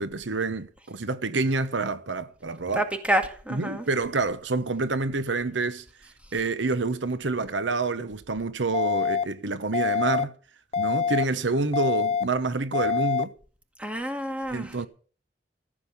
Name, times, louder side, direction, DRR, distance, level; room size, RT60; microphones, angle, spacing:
voice 1, 0.0-2.9 3.5-5.8 6.3-10.3 10.8-13.3 14.5-14.9, right 3 dB, 90° right, 1.1 m, -28 dB
voice 2, 2.8-3.8 13.8-14.7, right 1 dB, 5° right, 1.9 m, -28 dB
sound 1, 8.7-9.2 9.7-10.2 10.7-11.2 11.7-12.2 12.7-13.2, left 6 dB, 35° left, 0.6 m, -25 dB
14.5 x 7.6 x 8.3 m
head